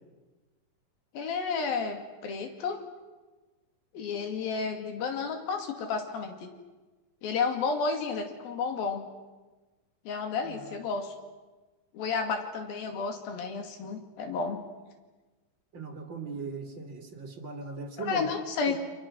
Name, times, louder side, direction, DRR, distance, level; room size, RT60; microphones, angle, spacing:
voice 1, 1.1-2.8 3.9-6.5 7.2-9.0 10.1-11.1 11.9-14.6 18.0-18.7, left 5 dB, 75° left, 5 dB, 4.1 m, -31 dB
voice 2, 10.4-10.8 15.7-18.3 18.7-18.8, right 4 dB, 40° right, 4 dB, 2.2 m, -39 dB
29.5 x 26.0 x 6.2 m, 1.2 s
omnidirectional pair, 4.3 m